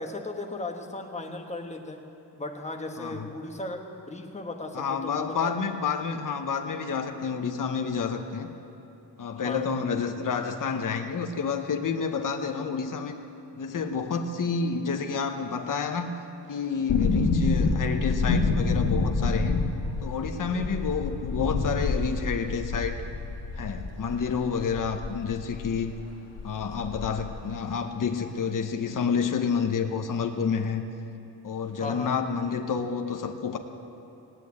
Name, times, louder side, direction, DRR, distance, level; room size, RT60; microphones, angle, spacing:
voice 1, 0.0-2.1 2.3-5.5 9.4-9.7 20.5-20.8 31.8-32.1, left 2 dB, 15° left, 3 dB, 1.2 m, -36 dB
voice 2, 4.7-8.5 9.2-13.1 13.6-16.1 16.5-19.6 20.0-23.0 23.6-25.9 26.4-30.8 31.4-33.6, left 5 dB, 45° left, 5 dB, 1.0 m, -29 dB
sound 1, 16.9-25.7 26.0-26.1 26.4-27.4 27.6-27.7, left 3 dB, 85° left, 1.5 m, -27 dB
17.0 x 10.0 x 8.5 m, 2.9 s
wide cardioid pair, 160°, 44 cm